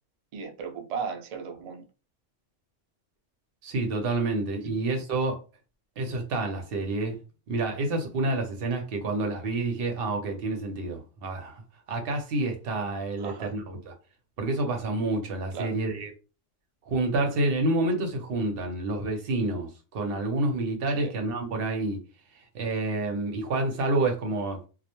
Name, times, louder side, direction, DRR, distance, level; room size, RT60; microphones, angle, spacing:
voice 1, 0.3-1.8 13.2-13.6 15.5-15.8 20.9-21.1, right 6 dB, 90° right, 0.3 m, -36 dB
voice 2, 3.6-5.4 6.0-7.2 7.5-11.6 11.9-13.9 14.4-16.1 16.9-22.0 22.5-24.6, right 2 dB, 60° right, 0.8 m, -28 dB
2.3 x 2.0 x 2.9 m
omnidirectional pair, 1.2 m